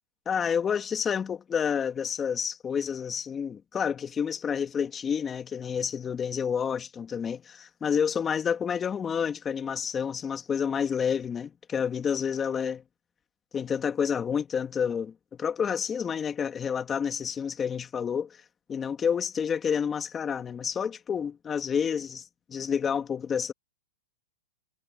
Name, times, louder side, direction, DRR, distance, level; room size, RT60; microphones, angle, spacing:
voice 1, 0.3-12.8 13.5-18.4 18.7-22.2 22.5-23.5, left 7 dB, 20° left, 2.4 m, -29 dB
hypercardioid pair, 130°, 0 cm